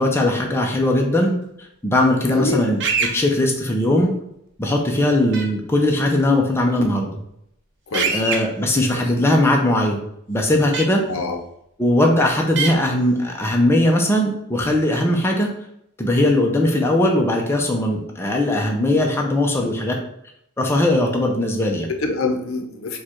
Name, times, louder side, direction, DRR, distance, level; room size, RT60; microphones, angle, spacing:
voice 1, 0.0-1.4 1.8-4.2 4.6-7.1 8.1-11.0 11.8-15.5 16.0-20.0 20.6-21.9, left 1 dB, 10° left, 0 dB, 0.5 m, -19 dB
voice 2, 2.3-2.7 7.9-8.2 8.9-9.0 11.1-11.4 21.9-23.0, left 3 dB, 65° left, 4 dB, 0.7 m, -25 dB
sound 1, 2.8-3.1 5.3-5.4 7.9-8.4 10.7-10.8 12.6-12.7, right 5 dB, 55° right, 0.7 m, -22 dB
4.7 x 2.3 x 4.3 m, 0.76 s
head